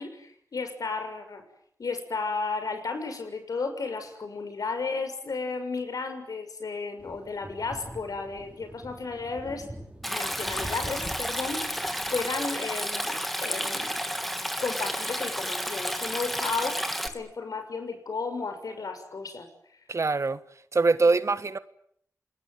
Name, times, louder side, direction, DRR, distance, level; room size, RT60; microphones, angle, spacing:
voice 1, 0.0-1.4 1.8-9.7 10.0-13.9 14.6-19.5, left 4 dB, 70° left, 6.7 m, -33 dB
sound 1, 7.0-12.4, right 1 dB, 15° right, 6.8 m, -44 dB
Stream, 10.0-17.1, equal, ahead, 3.0 m, -31 dB
voice 2, 19.9-20.4 20.7-21.6, right 3 dB, 50° right, 1.5 m, -23 dB
28.5 x 20.0 x 9.4 m
cardioid pair, 65°, 6 cm